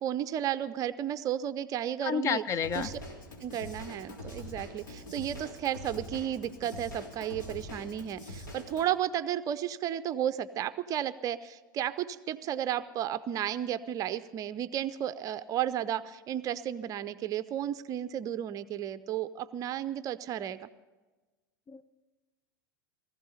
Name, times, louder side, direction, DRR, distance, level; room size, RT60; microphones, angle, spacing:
voice 1, 0.0-2.4 2.7-3.0 3.4-20.7, right 11 dB, 30° right, 14 dB, 0.5 m, -33 dB
voice 2, 2.0-2.9 21.7-21.8, left 7 dB, 25° left, 14 dB, 0.7 m, -30 dB
Drum kit / Drum, 2.6-8.9, left 1 dB, 65° left, 3.5 m, -44 dB
20.0 x 15.0 x 4.2 m, 1.2 s
figure-of-eight pair, 85°, 11 cm